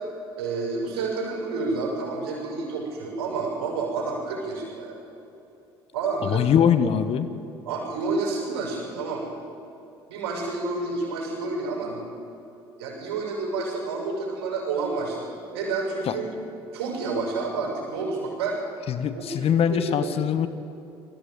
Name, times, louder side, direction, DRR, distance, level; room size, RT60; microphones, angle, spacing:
voice 1, 0.4-5.0 5.9-6.4 7.7-9.3 10.1-12.0 12.8-16.2 16.7-18.6 19.1-19.2 19.6-20.1, right 3 dB, 75° right, -1 dB, 6.9 m, -29 dB
voice 2, 6.2-7.3 16.1-16.2 18.9-20.5, left 8 dB, 50° left, 11 dB, 1.4 m, -22 dB
20.5 x 15.0 x 9.1 m, 2.8 s
hypercardioid pair, 60°, 13 cm